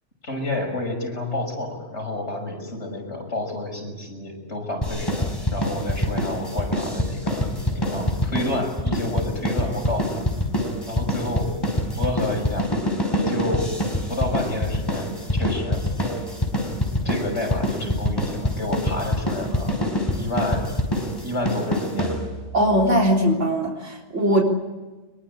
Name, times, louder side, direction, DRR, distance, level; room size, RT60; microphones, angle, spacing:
voice 1, 0.2-10.3 10.9-11.6 11.9-12.7 13.1-13.8 14.1-15.9 17.0-19.8 20.2-20.7 21.2-22.2, left 2 dB, 65° left, 3 dB, 6.8 m, -29 dB
sound 1, 4.8-22.6, left 1 dB, 20° left, 4.9 m, -25 dB
voice 2, 22.5-24.4, equal, 85° right, -1 dB, 4.2 m, -20 dB
24.0 x 22.0 x 8.8 m, 1.2 s
omnidirectional pair, 1.2 m